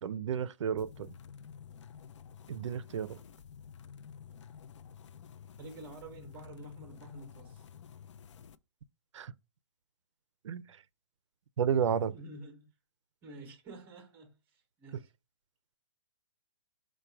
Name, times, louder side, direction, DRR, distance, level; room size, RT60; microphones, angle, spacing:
voice 1, 0.0-1.2 2.5-3.2 9.1-9.3 10.4-10.8 11.6-12.1, right 7 dB, 85° right, 0.4 m, -32 dB
sound 1, 0.8-8.6, left 7 dB, 80° left, 0.4 m, -51 dB
voice 2, 5.6-7.6 12.1-12.7 13.2-15.1, right 2 dB, 10° right, 0.6 m, -49 dB
4.6 x 2.2 x 4.4 m
hypercardioid pair, 170°, 15 cm